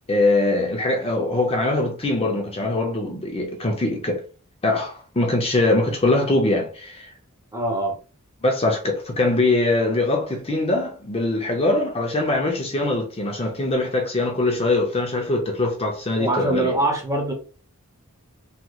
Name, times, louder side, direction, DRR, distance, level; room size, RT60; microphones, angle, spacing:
voice 1, 0.1-4.2 4.6-7.1 8.4-16.7, left 2 dB, 25° left, 0.7 m, -22 dB
voice 2, 7.5-8.0 16.2-17.3, right 1 dB, 15° right, 0.9 m, -23 dB
3.2 x 3.0 x 2.3 m
head